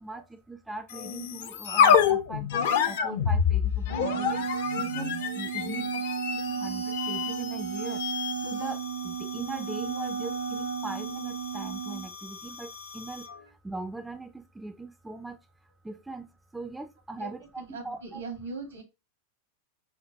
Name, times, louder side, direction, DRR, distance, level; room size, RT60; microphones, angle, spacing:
voice 1, 0.0-2.6 2.9-4.5 4.8-5.9 6.3-8.0 8.4-13.3 13.6-15.4 15.8-16.3 16.5-18.2, right 3 dB, 5° right, 0.3 m, -40 dB
sound 1, 0.9-13.4, left 7 dB, 55° left, 0.5 m, -29 dB
Wind instrument woodwind instrument, 3.9-12.0, right 7 dB, 80° left, 0.9 m, -33 dB
voice 2, 5.6-6.0 17.2-17.3 17.6-18.8, right 3 dB, 75° right, 1.3 m, -40 dB
5.1 x 2.0 x 2.8 m
figure-of-eight pair, 90°, 0 cm